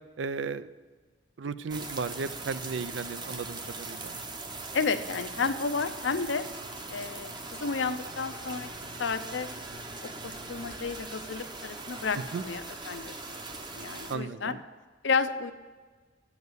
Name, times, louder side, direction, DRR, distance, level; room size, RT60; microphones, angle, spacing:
voice 1, 0.2-0.7 1.4-4.2 12.3-12.4 14.1-14.6, right 4 dB, 80° right, 14 dB, 0.5 m, -35 dB
sound 1, 1.7-14.2, right 3 dB, 25° right, 0.8 m, -41 dB
voice 2, 4.7-6.5 6.9-7.3 7.6-8.7 9.0-9.5 10.0-13.1 13.6-14.6 15.0-15.5, left 4 dB, 80° left, 10 dB, 0.7 m, -31 dB
8.2 x 7.2 x 8.0 m, 1.4 s
head